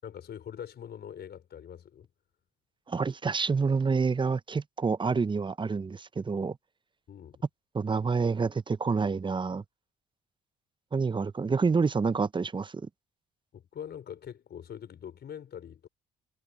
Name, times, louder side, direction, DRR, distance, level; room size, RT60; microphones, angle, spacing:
voice 1, 0.0-2.1 7.1-7.4 13.5-15.9, left 9 dB, 55° left, 4.9 m, -43 dB
voice 2, 2.9-6.6 7.7-9.6 10.9-12.9, right 4 dB, 25° right, 0.7 m, -28 dB
hypercardioid pair, 55°, 20 cm